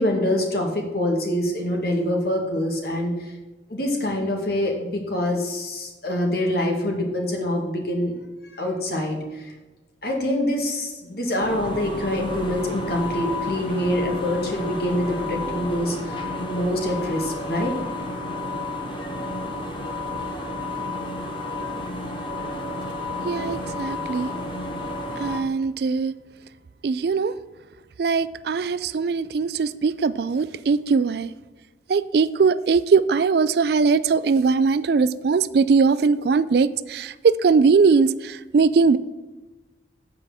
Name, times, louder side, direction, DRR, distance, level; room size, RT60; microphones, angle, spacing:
voice 1, 0.0-3.3 3.7-8.1 8.5-9.5 10.0-17.8, left 1 dB, 55° left, 1 dB, 2.0 m, -25 dB
sound 1, 11.4-25.4, left 2 dB, 25° left, 1.2 m, -31 dB
voice 2, 23.2-24.3 25.2-26.1 26.8-27.4 28.0-31.3 31.9-39.0, right 5 dB, 55° right, 15 dB, 0.3 m, -20 dB
8.2 x 5.0 x 7.4 m, 1.2 s
head